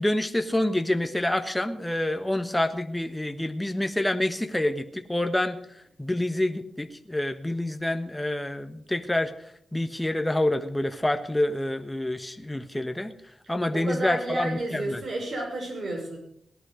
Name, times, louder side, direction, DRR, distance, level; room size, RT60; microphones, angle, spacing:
voice 1, 0.0-5.6 6.0-13.1 13.5-15.0, left 1 dB, 10° left, 8 dB, 1.2 m, -27 dB
voice 2, 13.7-16.2, right 1 dB, 60° right, 0 dB, 6.4 m, -31 dB
17.5 x 11.0 x 5.1 m, 0.69 s
cardioid pair, 70°, 0 cm